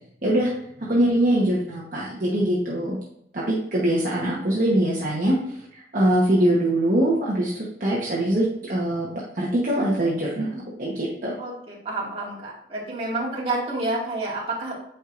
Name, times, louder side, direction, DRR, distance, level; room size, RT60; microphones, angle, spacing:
voice 1, 0.2-0.5 0.8-3.0 3.3-9.1 9.3-11.3, right 1 dB, 50° right, -5 dB, 1.1 m, -23 dB
voice 2, 11.4-14.8, right 2 dB, 30° right, -5 dB, 2.0 m, -29 dB
8.8 x 4.6 x 2.5 m, 0.74 s
head